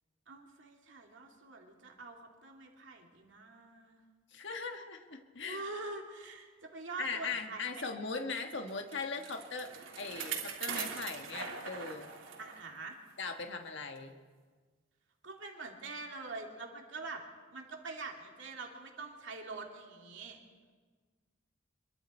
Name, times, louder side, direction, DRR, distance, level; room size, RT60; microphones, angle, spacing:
voice 1, 0.3-4.0 5.4-7.8 12.4-13.0 15.2-17.2 17.5-20.4, right 3 dB, 70° right, 1 dB, 2.7 m, -45 dB
voice 2, 4.3-5.6 7.0-12.1 13.2-14.1, left 4 dB, 65° left, 4 dB, 1.6 m, -39 dB
Bicycle, 8.7-12.6 13.0-13.1 14.0-14.1, right 6 dB, 85° right, 3.2 m, -41 dB
25.5 x 23.5 x 4.4 m, 1.5 s
head